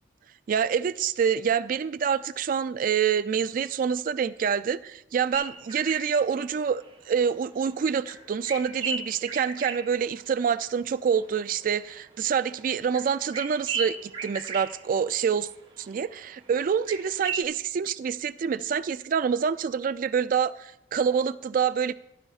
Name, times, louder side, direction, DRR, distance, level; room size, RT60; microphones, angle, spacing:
voice 1, 0.5-15.5 15.8-21.9, right 7 dB, 50° right, 0.3 m, -26 dB
sound 1, 5.3-7.7 8.0-10.8 11.1-16.1 16.3-17.4, right 4 dB, 30° right, 1.0 m, -37 dB
15.0 x 11.0 x 2.4 m
head